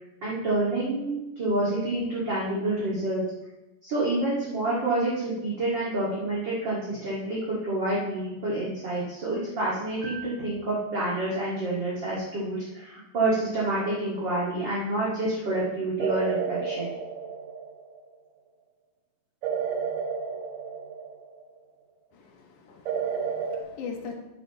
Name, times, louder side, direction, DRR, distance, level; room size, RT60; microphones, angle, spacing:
voice 1, 0.2-3.2 3.8-16.9, right 2 dB, 40° right, -7 dB, 2.4 m, -28 dB
sound 1, 16.0-18.1 19.4-21.5 22.9-23.6, right 6 dB, 70° right, 2.1 m, -31 dB
voice 2, 22.1-24.2, left 5 dB, 75° left, 2 dB, 2.9 m, -41 dB
11.0 x 9.8 x 3.0 m, 0.99 s
omnidirectional pair, 3.6 m